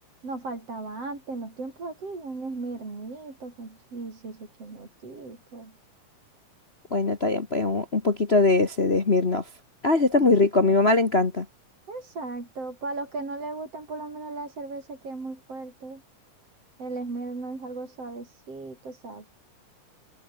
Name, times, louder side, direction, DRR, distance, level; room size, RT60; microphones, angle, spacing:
voice 1, 0.2-5.7 10.2-10.8 11.9-16.0 16.8-19.3, right 3 dB, 45° right, 6.6 m, -37 dB
voice 2, 6.9-9.4 9.8-11.5, left 3 dB, 50° left, 0.7 m, -21 dB
omnidirectional pair, 3.8 m